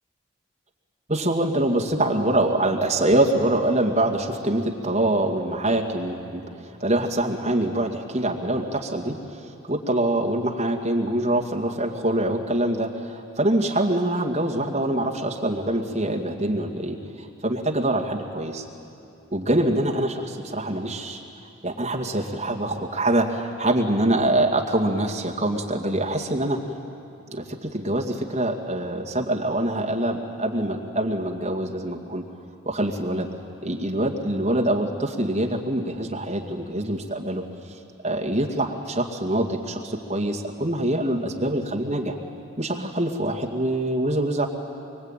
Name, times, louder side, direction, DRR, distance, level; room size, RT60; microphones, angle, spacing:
voice 1, 1.1-18.6 19.3-21.2 21.6-26.6 27.3-32.2 32.6-33.3 33.6-37.8 38.0-42.2 42.6-44.5, right 1 dB, 35° right, 0 dB, 2.2 m, -24 dB
24.5 x 23.5 x 9.1 m, 2.7 s
head